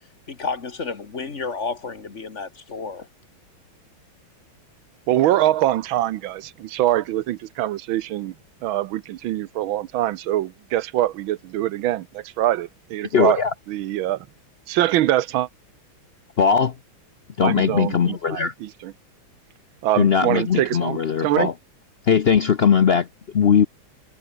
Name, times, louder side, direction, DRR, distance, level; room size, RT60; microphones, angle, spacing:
voice 1, 0.3-3.1, left 4 dB, 35° left, 1.9 m, -31 dB
voice 2, 5.1-8.3 8.6-13.4 13.7-14.3 14.7-15.5 17.4-18.9 19.8-21.5, right 14 dB, 80° right, 1.6 m, -23 dB
voice 3, 13.1-13.5 16.4-16.7 17.4-18.5 20.0-21.5 22.0-23.7, left 7 dB, 85° left, 0.5 m, -19 dB
omnidirectional pair, 2.2 m